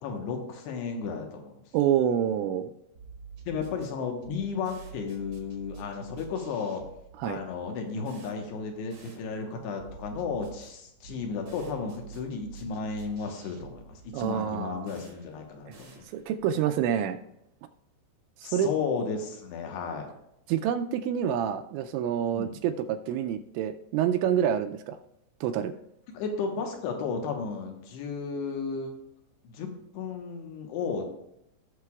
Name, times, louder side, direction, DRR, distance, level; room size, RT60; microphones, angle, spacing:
voice 1, 0.0-1.6 3.5-6.8 7.2-16.0 18.4-20.1 22.3-22.6 26.1-28.9 29.4-31.0, left 5 dB, 75° left, 3 dB, 3.0 m, -34 dB
voice 2, 1.7-2.7 7.2-7.4 14.1-14.9 15.7-15.8 16.1-17.2 18.4-18.7 20.5-25.0 25.4-25.7, right 9 dB, 85° right, 6 dB, 2.8 m, -27 dB
sound 1, 2.9-16.6, right 5 dB, 60° right, 1.3 m, -49 dB
18.0 x 6.7 x 2.3 m, 0.82 s
omnidirectional pair, 5.2 m